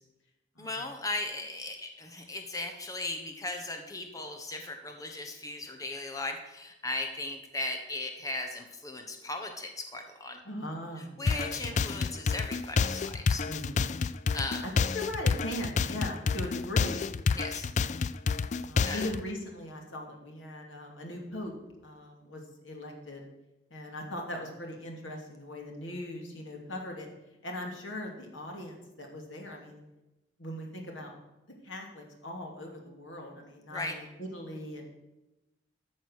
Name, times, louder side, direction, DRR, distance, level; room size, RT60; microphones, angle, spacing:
voice 1, 0.6-10.4 11.2-13.5 14.3-14.7 17.4-17.7 18.8-19.1 33.7-34.0, left 2 dB, 20° left, 4 dB, 1.2 m, -37 dB
voice 2, 10.4-11.8 13.4-13.8 14.8-17.0 18.6-21.5 21.8-23.2 23.7-27.1 27.4-29.8 30.4-31.1 31.6-34.9, left 1 dB, 90° left, 1 dB, 2.8 m, -40 dB
sound 1, 11.3-19.2, left 5 dB, 40° left, 0.3 m, -29 dB
13.0 x 6.7 x 6.5 m, 0.99 s
head